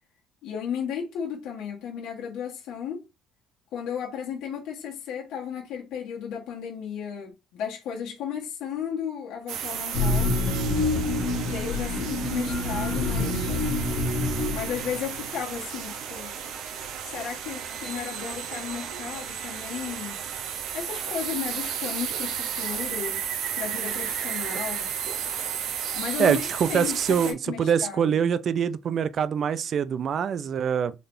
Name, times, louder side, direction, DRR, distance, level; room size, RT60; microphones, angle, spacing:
voice 1, 0.4-3.0 3.7-10.4 11.4-13.5 14.5-16.3 17.0-20.2 20.7-23.2 23.6-24.9 26.0-26.4 26.7-28.2, left 8 dB, 70° left, 1.3 m, -34 dB
sound 1, 9.5-27.3, right 8 dB, 70° right, 0.8 m, -33 dB
sound 2, 9.9-15.3, left 2 dB, 45° left, 1.2 m, -27 dB
voice 2, 26.2-30.9, right 7 dB, 45° right, 0.4 m, -24 dB
4.0 x 3.4 x 2.6 m
cardioid pair, 110°, 0 cm